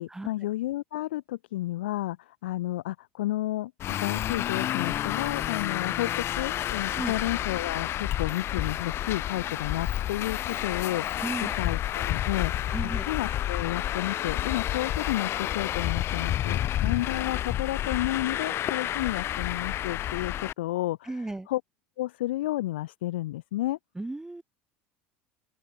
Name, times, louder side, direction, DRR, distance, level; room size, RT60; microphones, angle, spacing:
voice 1, 0.0-3.7 4.0-12.7 13.1-21.1 21.5-21.6 22.0-23.8, left 16 dB, 90° left, 1.9 m, -31 dB
Traffic noise roadway noise, 3.8-20.5, left 12 dB, 50° left, 0.6 m, -30 dB
voice 2, 11.2-11.7 12.7-13.1 21.0-21.5 23.9-24.4, right 2 dB, 10° right, 1.1 m, -35 dB
open air
supercardioid pair, 90°, 6 cm